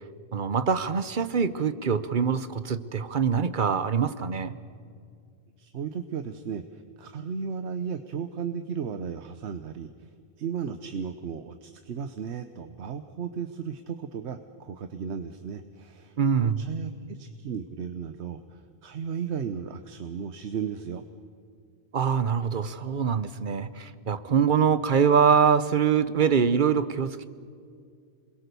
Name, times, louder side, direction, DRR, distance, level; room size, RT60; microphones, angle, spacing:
voice 1, 0.3-4.5 16.2-16.7 21.9-27.3, right 6 dB, 50° right, 13 dB, 1.0 m, -24 dB
voice 2, 5.6-10.1 10.4-16.2 16.4-21.0, right 7 dB, 90° right, 9 dB, 1.2 m, -35 dB
27.5 x 21.5 x 6.9 m, 2.3 s
omnidirectional pair, 1.1 m